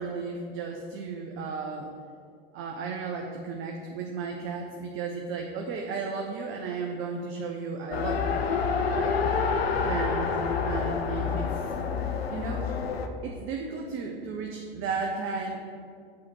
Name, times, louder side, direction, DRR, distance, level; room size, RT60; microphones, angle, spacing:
voice 1, 0.0-1.9 2.5-8.4 8.9-9.2 9.8-10.4 10.7-11.5 12.3-12.6 13.2-15.6, right 4 dB, 45° right, 2 dB, 0.9 m, -34 dB
Race car auto racing, 7.9-13.1, left 5 dB, 80° left, 0.8 m, -28 dB
8.5 x 4.3 x 6.4 m, 2.2 s
figure-of-eight pair, 80°, 30 cm